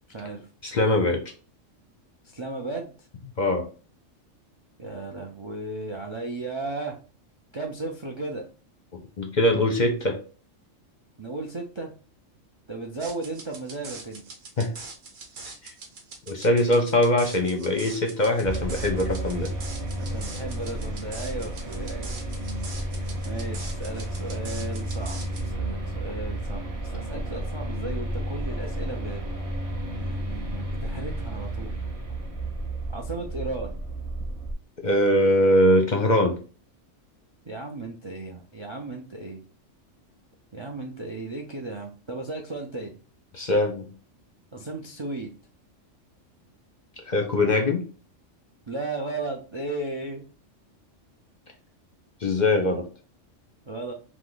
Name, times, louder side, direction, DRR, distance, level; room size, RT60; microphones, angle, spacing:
voice 1, 0.1-0.5 2.3-3.1 4.8-7.0 7.5-8.5 11.2-11.9 12.7-14.2 20.0-22.1 22.6-23.0 23.2-25.2 25.4-29.3 30.0-31.8 32.9-33.8 37.4-39.4 40.5-43.0 44.5-45.3 48.7-50.2 53.7-53.9, right 2 dB, 40° right, 2 dB, 0.4 m, -35 dB
voice 2, 0.6-1.2 3.4-3.6 9.2-10.2 14.6-14.7 15.6-15.7 16.3-19.5 34.8-36.4 43.3-43.9 47.1-47.9 52.2-52.8, left 1 dB, 45° left, 4 dB, 0.7 m, -22 dB
sound 1, 13.0-25.5, right 3 dB, 80° right, 1.2 m, -43 dB
sound 2, 18.4-34.5, right 1 dB, 20° right, 0.8 m, -32 dB
4.9 x 2.2 x 3.9 m, 0.37 s
omnidirectional pair, 1.3 m